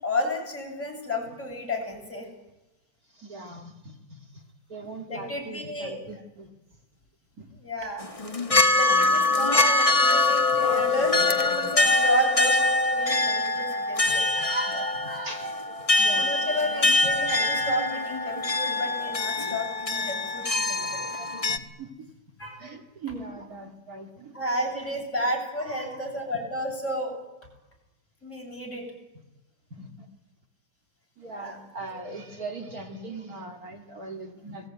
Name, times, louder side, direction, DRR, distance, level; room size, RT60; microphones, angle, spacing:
voice 1, 0.0-2.3 5.1-5.9 7.5-8.1 8.7-12.6 12.9-14.2 16.2-21.2 22.4-22.6 24.3-27.1 28.2-28.9 31.3-31.6, left 1 dB, 40° left, 0 dB, 7.9 m, -31 dB
voice 2, 3.1-4.4 4.7-6.5 7.4-7.5 8.5-8.6 12.5-12.6 14.1-16.3 17.2-17.3 17.6-17.7 19.0-19.1 21.2-21.9 22.6-24.3 25.6-26.0 26.3-26.4 29.7-30.1 31.2-34.7, right 2 dB, 50° right, 4 dB, 2.7 m, -40 dB
sound 1, 8.0-21.6, left 2 dB, 20° left, 1.2 m, -24 dB
30.0 x 20.5 x 9.4 m, 1.0 s
omnidirectional pair, 2.0 m